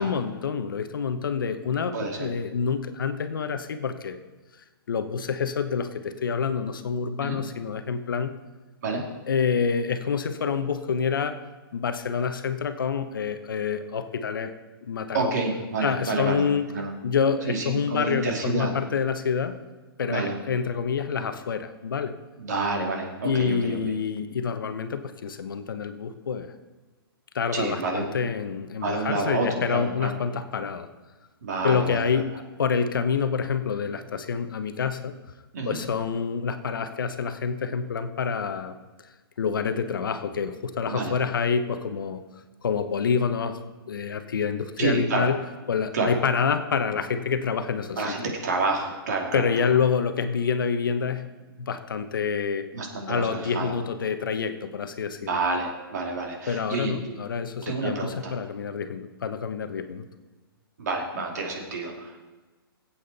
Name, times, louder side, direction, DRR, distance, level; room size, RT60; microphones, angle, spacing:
voice 1, 0.0-4.2 4.9-8.3 9.3-11.4 11.7-14.5 14.8-15.3 15.8-16.7 17.0-19.5 20.0-22.2 23.2-26.5 27.3-30.9 31.6-35.1 35.7-38.8 39.4-42.2 42.6-45.4 45.7-48.3 49.3-51.3 51.6-52.7 53.1-55.2 56.5-60.0, left 6 dB, 60° left, 9 dB, 1.0 m, -27 dB
voice 2, 1.9-2.3 7.2-7.4 8.8-9.0 15.1-16.4 16.7-16.9 17.5-18.7 20.1-20.3 22.4-23.8 27.5-28.1 28.8-30.1 31.4-32.2 35.5-35.8 40.9-41.2 44.8-45.3 45.9-46.1 48.0-49.7 52.7-53.7 55.2-57.1 57.6-58.3 60.8-62.2, right 3 dB, 45° right, 1 dB, 2.7 m, -29 dB
19.0 x 8.6 x 4.1 m, 1.2 s
hypercardioid pair, 175°, 13 cm